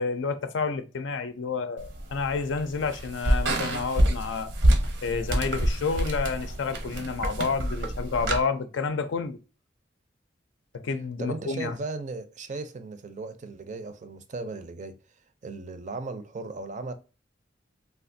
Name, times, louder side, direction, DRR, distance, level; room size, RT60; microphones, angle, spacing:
voice 1, 0.0-4.5 5.0-9.4 10.8-11.8, left 4 dB, 85° left, 0.4 m, -29 dB
sound 1, 1.8-8.4, right 1 dB, 75° right, 0.8 m, -27 dB
voice 2, 11.2-15.0 15.4-16.9, right 3 dB, 40° right, 0.4 m, -36 dB
3.4 x 2.4 x 2.6 m
head